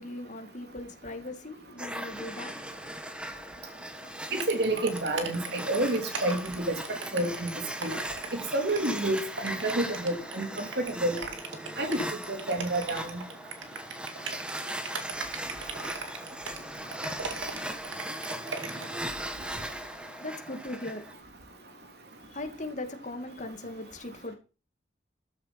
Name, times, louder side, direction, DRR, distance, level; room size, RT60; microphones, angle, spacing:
voice 1, 0.0-2.7 20.2-21.1 22.2-24.3, left 2 dB, 40° left, 2.2 m, -39 dB
sound 1, 1.8-21.1, right 1 dB, 5° right, 1.1 m, -39 dB
voice 2, 4.3-6.8 7.1-7.5 7.8-7.9 8.3-11.2 11.8-12.0 12.3-13.2, right 1 dB, 55° right, 3.2 m, -29 dB
sound 2, 4.4-19.0, right 4 dB, 80° right, 2.5 m, -39 dB
13.5 x 7.5 x 5.8 m
head